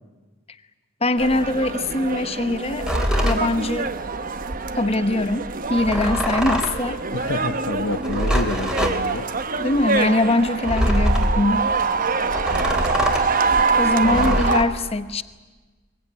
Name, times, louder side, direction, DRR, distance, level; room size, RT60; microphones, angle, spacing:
voice 1, 1.0-2.9 3.2-3.9 4.7-7.0 9.6-11.7 13.8-15.2, left 2 dB, 25° left, 13 dB, 0.9 m, -22 dB
sound 1, 1.2-14.6, right 4 dB, 40° right, 1.1 m, -25 dB
sound 2, 2.8-3.4 5.7-6.8 8.0-9.0 10.7-11.4 12.3-13.3 14.0-14.7, equal, 5° right, 2.8 m, -23 dB
voice 2, 7.1-9.3 12.5-12.9 14.0-14.4, left 2 dB, 60° left, 10 dB, 1.0 m, -29 dB
23.5 x 23.0 x 9.5 m, 1.3 s
head